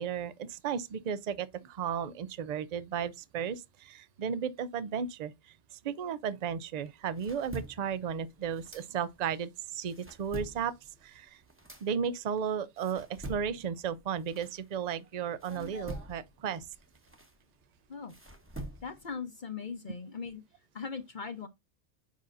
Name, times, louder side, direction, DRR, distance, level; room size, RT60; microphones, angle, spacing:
voice 1, 0.0-5.3 5.8-10.7 11.0-11.4 11.8-16.7, right 7 dB, 50° right, 0.5 m, -34 dB
sound 1, 6.8-9.4 9.7-15.0 15.4-19.1, right 1 dB, 10° right, 1.0 m, -46 dB
voice 2, 18.8-20.4 20.7-21.5, left 5 dB, 50° left, 0.9 m, -39 dB
7.4 x 5.4 x 2.5 m
omnidirectional pair, 1.1 m